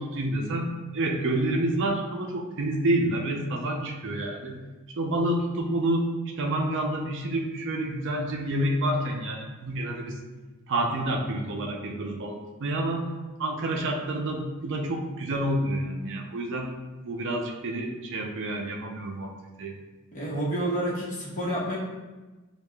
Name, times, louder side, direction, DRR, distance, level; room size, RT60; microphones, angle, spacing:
voice 1, 0.0-4.6 4.9-10.2 10.7-13.1 13.4-16.7 17.0-19.3 19.6-19.8, right 1 dB, 55° right, 1 dB, 0.5 m, -28 dB
voice 2, 20.1-21.8, right 1 dB, 35° left, -7 dB, 1.2 m, -29 dB
6.6 x 2.3 x 2.3 m, 1.2 s
head